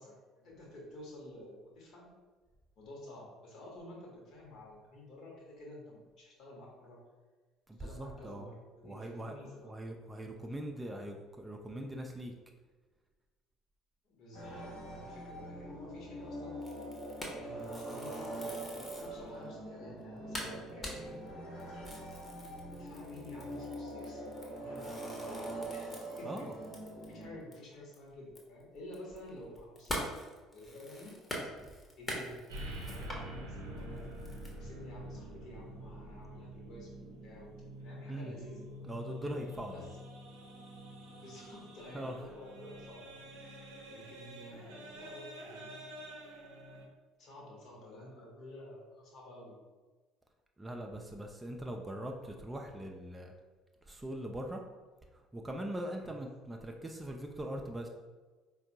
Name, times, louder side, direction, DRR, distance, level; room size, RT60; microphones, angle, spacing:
voice 1, 0.0-2.1 2.8-7.0 7.8-9.7 14.0-16.6 17.3-21.2 21.7-21.9 22.7-26.5 27.1-30.1 30.5-31.2 32.0-34.0 34.6-37.5 37.8-38.7 39.7-39.9 41.2-43.2 43.9-45.8 47.2-49.6 55.9-56.1, left 1 dB, 55° left, -2 dB, 1.0 m, -51 dB
voice 2, 7.7-8.5 8.8-9.3 9.6-12.3 26.2-26.5 31.6-31.7 38.1-38.3 38.8-39.9 41.9-42.2 50.6-53.3 53.8-54.6 55.1-57.9, right 1 dB, 15° right, 2 dB, 0.4 m, -41 dB
sound 1, 14.3-27.4, right 1 dB, 75° left, 1.2 m, -43 dB
sound 2, 16.6-19.2 19.7-19.8 20.0-20.1 20.3-27.2 27.5-27.6 27.9-33.2 33.8-34.5, left 1 dB, 25° left, 0.8 m, -44 dB
sound 3, 32.5-46.8, equal, 75° right, 0.5 m, -47 dB
4.2 x 2.3 x 2.7 m, 1.3 s
figure-of-eight pair, 55°, 0 cm